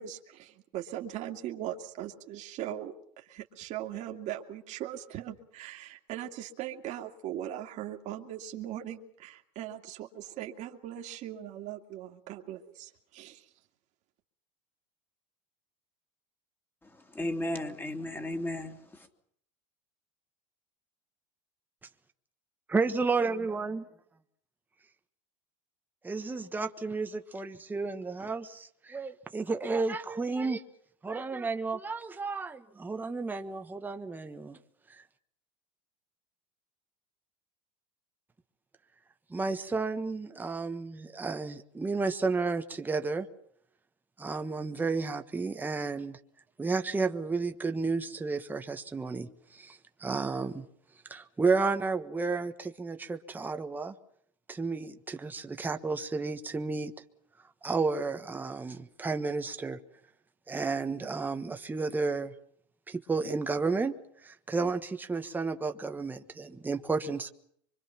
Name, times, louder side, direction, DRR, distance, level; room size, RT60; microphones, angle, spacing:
voice 1, 0.0-13.4, right 11 dB, 50° right, 3 dB, 2.4 m, -40 dB
voice 2, 16.8-19.1, left 1 dB, 10° left, 5 dB, 2.9 m, -35 dB
voice 3, 22.7-23.8 26.0-30.6 31.0-34.6 34.9-35.0 39.3-43.3 44.2-46.2 46.6-50.7 51.1-53.9 54.5-56.9 57.6-59.8 60.5-62.3 62.9-63.9 64.2-67.3, right 4 dB, 10° right, 7 dB, 1.3 m, -32 dB
24.5 x 24.5 x 5.9 m, 0.65 s
supercardioid pair, 130°, 16 cm